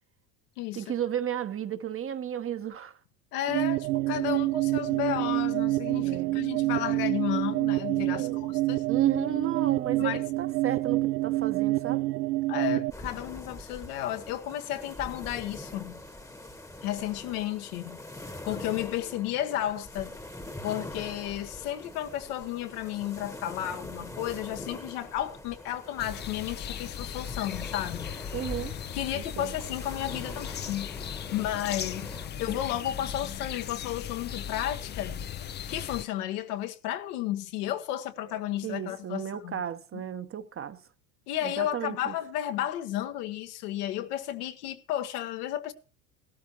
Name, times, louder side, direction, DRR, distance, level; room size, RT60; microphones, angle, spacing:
voice 1, 0.7-3.0 6.0-6.4 8.1-8.4 8.9-12.1 28.3-28.8 29.1-29.5 32.4-32.6 38.6-40.8 41.4-42.1, right 9 dB, 25° right, 1.0 m, -34 dB
voice 2, 3.3-8.8 10.0-10.2 12.5-16.0 16.8-18.0 18.4-20.1 20.6-28.1 28.9-30.9 31.3-32.1 32.4-35.2 35.7-39.6 41.3-45.7, left 12 dB, 65° left, 1.3 m, -33 dB
sound 1, 3.5-12.9, right 18 dB, 80° right, 0.6 m, -27 dB
sound 2, 12.9-32.3, left 1 dB, 5° left, 1.2 m, -43 dB
sound 3, 26.0-36.1, left 9 dB, 20° left, 0.5 m, -38 dB
17.5 x 12.5 x 3.0 m
hypercardioid pair, 85°, 48 cm